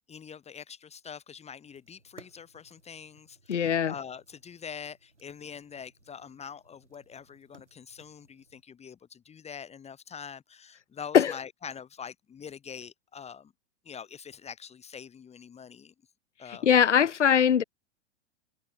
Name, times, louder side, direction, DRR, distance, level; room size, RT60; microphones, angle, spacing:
voice 1, 0.1-13.5 13.8-15.9 16.4-16.7, left 7 dB, 20° left, 2.2 m, -44 dB
sound 1, 1.7-8.6, right 2 dB, 90° right, 4.8 m, -60 dB
voice 2, 3.5-3.9 11.1-11.3 16.5-17.6, left 8 dB, 90° left, 0.5 m, -21 dB
figure-of-eight pair, 95°, 35 cm